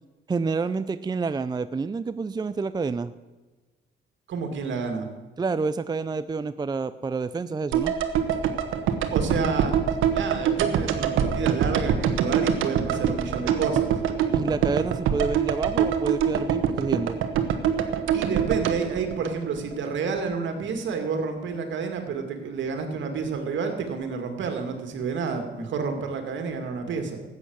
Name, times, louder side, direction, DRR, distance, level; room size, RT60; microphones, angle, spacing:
voice 1, 0.3-3.1 5.4-7.9 14.3-17.2, right 4 dB, 20° right, 13 dB, 0.5 m, -28 dB
voice 2, 4.3-5.1 9.1-9.7 10.1-14.0 18.1-27.2, right 5 dB, 70° right, 5 dB, 2.4 m, -29 dB
sound 1, 7.7-19.9 20.2-20.3, right 8 dB, 85° right, 1.3 m, -25 dB
13.5 x 8.8 x 8.1 m, 1.2 s
cardioid pair, 90°, 20 cm